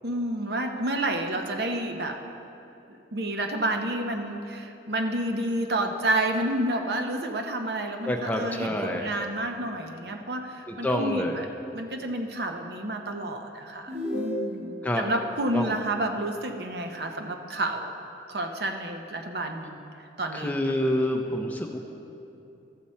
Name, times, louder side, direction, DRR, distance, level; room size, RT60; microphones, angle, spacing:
voice 1, 0.0-2.2 3.1-11.5 11.7-17.9 18.3-19.8 20.2-20.5, right 1 dB, 65° right, 4 dB, 0.8 m, -30 dB
voice 2, 8.0-9.1 10.7-11.4 14.8-15.0 15.5-15.8 20.3-21.8, left 1 dB, 10° left, 1 dB, 0.6 m, -27 dB
sound 1, 13.9-14.9, equal, 35° right, 1.8 m, -32 dB
13.0 x 6.9 x 4.3 m, 2.8 s
head